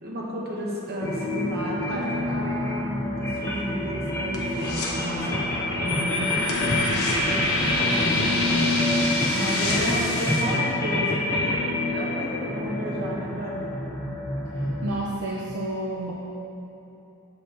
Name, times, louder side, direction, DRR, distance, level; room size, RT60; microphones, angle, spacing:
voice 1, 0.0-5.5 5.8-9.0 9.3-13.6, equal, 45° right, -4 dB, 1.0 m, -32 dB
sound 1, 1.0-15.0, left 1 dB, 10° left, 0.6 m, -27 dB
sound 2, 3.5-5.1 5.3-5.6 5.9-6.0 6.4-8.3 8.6-8.7 9.0-10.1 10.4-10.5, left 3 dB, 90° left, 0.9 m, -34 dB
sound 3, 4.6-10.4, left 2 dB, 70° left, 1.3 m, -29 dB
voice 2, 14.8-16.1, right 1 dB, 65° right, -4 dB, 0.5 m, -30 dB
6.5 x 4.5 x 3.8 m, 3.0 s
head